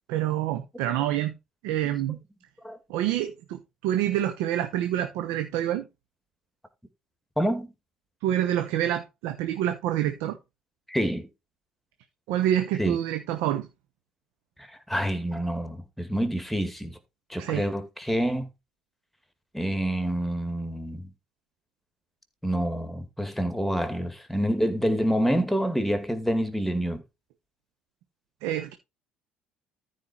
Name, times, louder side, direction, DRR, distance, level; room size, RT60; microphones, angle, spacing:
voice 1, 0.1-1.3 1.6-2.2 2.9-5.9 8.2-10.4 12.3-13.7 17.4-17.7 28.4-28.7, right 12 dB, 70° right, 1.0 m, -27 dB
voice 2, 7.4-7.7 10.9-11.3 12.8-13.0 14.6-17.0 17.3-18.5 19.5-21.1 22.4-27.0, equal, 5° left, 2.3 m, -27 dB
13.5 x 4.7 x 4.5 m
hypercardioid pair, 60°, 4 cm